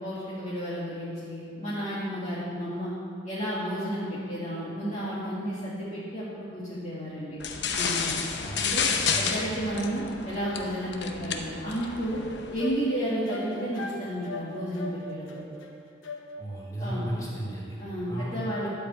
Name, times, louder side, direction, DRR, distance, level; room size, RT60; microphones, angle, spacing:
voice 1, 0.0-2.9 3.2-7.4 7.7-8.2 8.6-8.9 9.2-12.2 12.5-15.5 16.8-17.1 17.8-18.7, equal, 35° left, -10 dB, 1.9 m, -32 dB
sound 1, 7.4-12.7, left 5 dB, 60° left, 0.8 m, -30 dB
sound 2, 12.1-16.7, left 2 dB, 80° left, 1.1 m, -40 dB
voice 2, 16.4-17.8 18.1-18.4, right 1 dB, 15° left, -7 dB, 3.1 m, -34 dB
12.5 x 5.1 x 8.2 m, 2.4 s
head